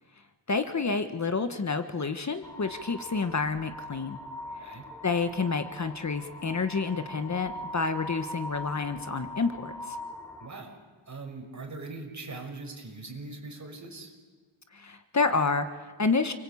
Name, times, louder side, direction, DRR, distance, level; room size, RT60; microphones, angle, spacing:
voice 1, 0.5-4.2 4.6-10.0 14.7-16.3, left 4 dB, 40° left, 8 dB, 1.4 m, -29 dB
sound 1, 2.4-10.5, left 1 dB, 5° left, 2.7 m, -42 dB
voice 2, 10.4-10.8 11.1-14.1, right 3 dB, 40° right, 2 dB, 6.1 m, -41 dB
29.0 x 23.5 x 8.7 m, 1.4 s
wide cardioid pair, 110°, 44 cm